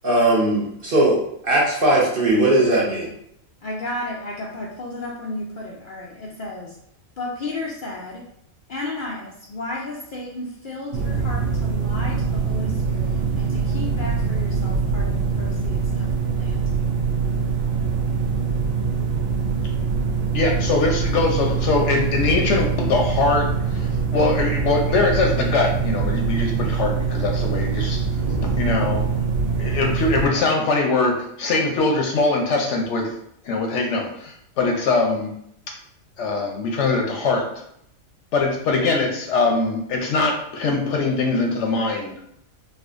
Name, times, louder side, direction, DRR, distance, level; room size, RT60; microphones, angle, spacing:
voice 1, 0.0-1.2 1.4-3.1, right 1 dB, 50° right, -4 dB, 0.8 m, -18 dB
voice 2, 3.6-6.8 7.2-8.2 8.7-16.6, left 2 dB, 85° left, -3 dB, 0.4 m, -33 dB
sound 1, 10.9-30.3, right 5 dB, 75° right, 1.1 m, -23 dB
voice 3, 20.3-28.0 28.4-29.0 29.6-33.1 33.4-35.3 36.2-37.6 38.3-42.2, left 3 dB, 65° left, 1 dB, 0.8 m, -22 dB
4.2 x 2.5 x 2.4 m, 0.72 s
omnidirectional pair, 1.5 m